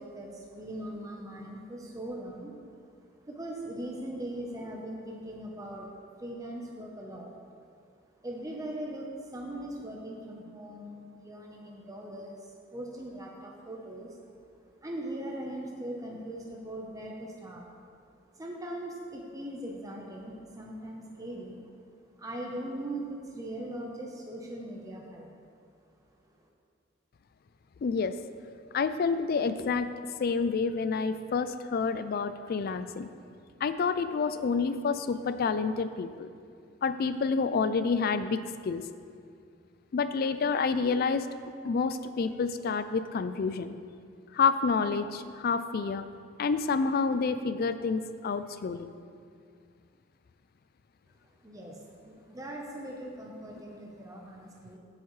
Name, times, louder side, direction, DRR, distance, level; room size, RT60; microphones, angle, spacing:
voice 1, 0.0-2.5 3.3-5.9 6.2-7.4 8.2-12.4 12.7-14.2 14.8-17.6 18.3-21.6 22.2-25.3 51.4-54.8, right 1 dB, 20° right, -1 dB, 0.9 m, -40 dB
voice 2, 27.8-28.2 28.7-29.9 30.2-33.1 33.6-36.3 36.8-38.8 39.9-41.3 41.6-43.8 44.3-46.1 46.4-48.9, left 5 dB, 50° left, 11 dB, 0.4 m, -28 dB
15.0 x 8.1 x 3.2 m, 2.3 s
head